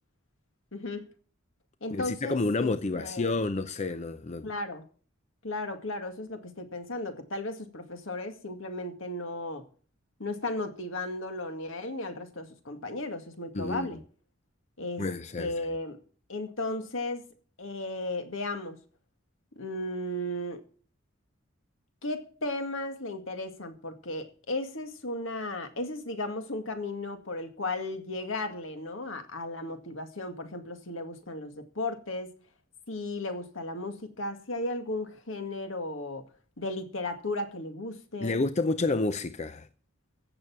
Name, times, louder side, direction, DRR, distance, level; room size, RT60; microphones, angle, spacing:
voice 1, 0.7-1.1 1.8-3.4 4.4-4.8 5.4-9.6 10.2-14.0 14.8-15.0 15.4-16.0 16.3-17.2 17.6-18.8 19.6-20.6 22.0-32.3 32.9-36.2 36.6-38.4, left 2 dB, 70° left, 2.1 m, -35 dB
voice 2, 1.9-4.5 13.5-14.0 15.0-15.5 38.2-39.7, left 3 dB, 35° left, 0.6 m, -29 dB
15.5 x 7.1 x 7.2 m
head